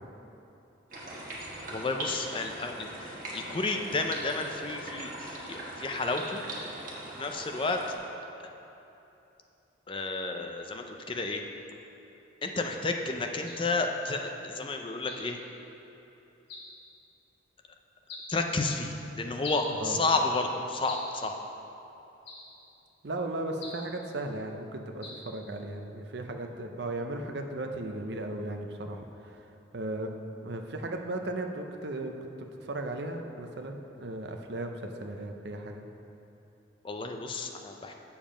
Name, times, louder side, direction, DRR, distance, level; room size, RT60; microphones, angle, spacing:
sound 1, 0.9-7.9, right 1 dB, 45° right, 1.4 m, -40 dB
voice 1, 1.7-6.4 7.2-7.8 9.9-11.4 12.4-15.4 18.3-21.4 36.8-37.9, left 3 dB, 25° left, 4 dB, 0.5 m, -31 dB
sound 2, 13.5-13.7 15.1-15.3 16.5-16.8 18.1-18.3 19.4-19.7 20.9-21.2 22.3-22.6 23.6-23.9 25.0-25.3, left 2 dB, 60° left, 1.3 m, -43 dB
voice 2, 19.7-20.0 23.0-29.4 29.7-30.1 30.4-35.8, right 2 dB, 60° right, 4 dB, 0.6 m, -36 dB
7.3 x 7.1 x 5.0 m, 2.9 s
head